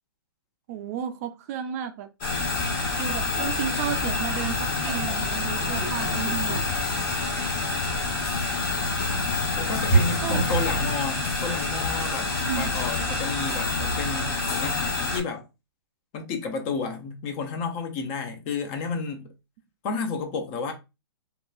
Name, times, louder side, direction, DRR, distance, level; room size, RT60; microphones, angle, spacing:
voice 1, 0.7-2.1 3.0-6.7 10.2-10.4 12.4-12.7, right 9 dB, 40° right, 0.4 m, -33 dB
sound 1, 2.2-15.2, left 3 dB, 60° left, 1.4 m, -28 dB
sound 2, 2.3-13.8, left 2 dB, 85° left, 0.5 m, -38 dB
sound 3, 4.8-10.9, right 4 dB, 15° left, 1.1 m, -30 dB
voice 2, 9.5-15.5 16.1-19.3 19.8-20.7, left 5 dB, 35° left, 0.6 m, -32 dB
2.8 x 2.2 x 2.3 m
hypercardioid pair, 130°, 13 cm